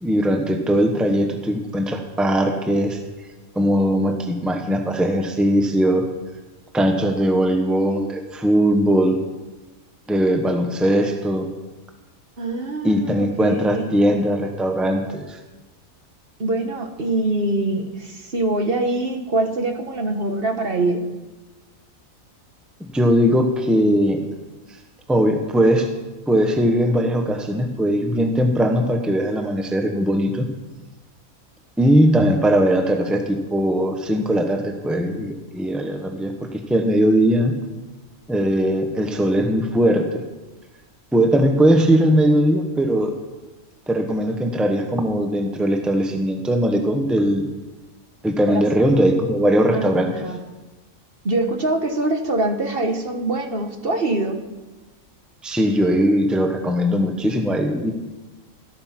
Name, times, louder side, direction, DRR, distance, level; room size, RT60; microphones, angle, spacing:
voice 1, 0.0-3.0 3.5-6.1 6.7-9.2 10.1-11.5 12.8-15.4 22.9-24.2 25.1-25.9 26.3-30.5 31.8-37.5 38.3-40.1 41.1-43.2 43.9-47.5 48.2-50.2 55.4-57.9, equal, ahead, 4 dB, 1.2 m, -19 dB
voice 2, 12.4-14.0 16.4-21.0 48.5-48.6 49.7-50.4 51.2-54.4, right 2 dB, 45° right, 5 dB, 1.7 m, -24 dB
14.0 x 13.0 x 6.0 m, 1.1 s
omnidirectional pair, 1.4 m